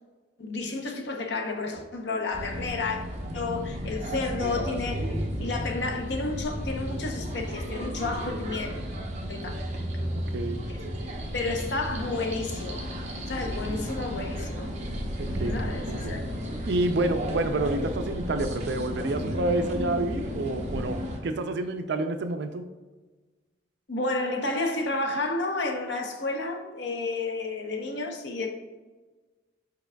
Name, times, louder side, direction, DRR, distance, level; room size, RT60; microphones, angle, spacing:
voice 1, 0.4-3.0 3.3-8.7 9.3-9.6 10.7-10.8 11.3-12.8 13.3-14.7 15.4-16.2 23.9-28.5, left 3 dB, 60° left, 0.7 m, -31 dB
sound 1, 2.3-21.2, equal, 35° right, 0.7 m, -33 dB
voice 2, 10.1-10.6 13.4-13.7 15.2-16.1 16.7-22.6, right 2 dB, 60° right, 0.4 m, -29 dB
4.8 x 4.6 x 2.2 m
head